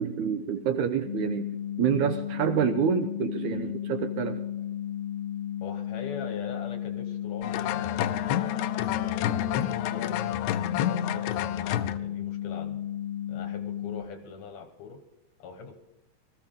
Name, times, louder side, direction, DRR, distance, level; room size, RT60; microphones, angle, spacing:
voice 1, 0.0-1.5 1.8-4.4, right 7 dB, 75° right, 8 dB, 1.9 m, -27 dB
sound 1, 1.0-14.0, left 11 dB, 15° left, 1.7 m, -34 dB
voice 2, 5.6-10.4 10.9-12.8 13.3-15.0 15.4-15.8, left 5 dB, 65° left, 7 dB, 2.0 m, -42 dB
sound 2, 7.4-12.0, left 11 dB, 80° left, 1.7 m, -29 dB
20.0 x 14.5 x 3.7 m, 0.93 s
omnidirectional pair, 4.0 m